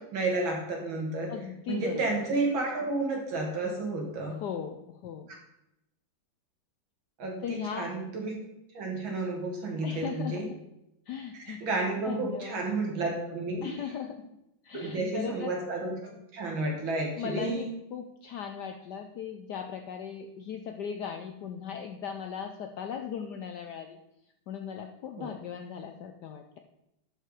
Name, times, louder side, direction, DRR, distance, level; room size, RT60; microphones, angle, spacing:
voice 1, 0.0-1.3 1.7-4.4 7.2-8.4 8.7-10.4 11.3-13.7 14.7-17.7 25.2-25.3, right 2 dB, 65° right, 0 dB, 2.6 m, -31 dB
voice 2, 1.3-2.0 4.3-5.3 7.4-7.9 9.8-10.6 11.1-11.6 12.0-12.6 13.6-14.3 14.6-15.6 17.2-24.0 24.5-26.6, left 8 dB, 75° left, 5 dB, 1.0 m, -38 dB
11.5 x 4.6 x 4.8 m, 0.87 s
omnidirectional pair, 2.4 m